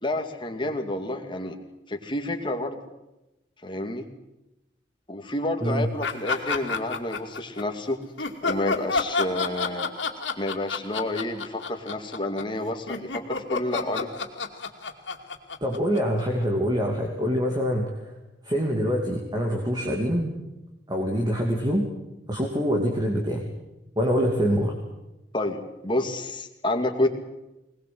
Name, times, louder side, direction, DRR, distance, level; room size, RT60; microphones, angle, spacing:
voice 1, 0.0-1.6 1.9-2.8 3.6-4.1 5.1-8.0 8.4-9.9 10.4-14.1 25.3-27.1, left 1 dB, 25° left, 4 dB, 2.3 m, -29 dB
sound 1, 6.0-7.6 8.2-16.4, left 4 dB, 90° left, 2.5 m, -29 dB
voice 2, 15.6-17.9 18.4-20.4 20.9-21.8 22.3-23.4 24.0-24.7, equal, 25° right, 0 dB, 2.8 m, -25 dB
21.0 x 20.0 x 7.8 m, 0.96 s
head